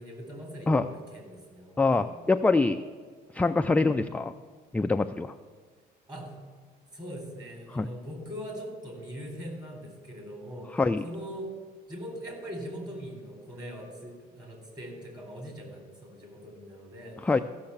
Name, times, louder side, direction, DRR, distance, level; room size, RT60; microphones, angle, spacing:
voice 1, 0.0-2.2 6.1-6.4 6.9-10.8 11.0-11.5 11.9-17.2, equal, 25° right, 1 dB, 3.9 m, -41 dB
voice 2, 1.8-2.8 3.3-4.3 4.7-5.3 7.7-7.9 10.7-11.0 17.2-17.4, left 3 dB, 10° left, 7 dB, 0.3 m, -24 dB
14.5 x 6.6 x 7.1 m, 1.6 s
cardioid pair, 110°, 17 cm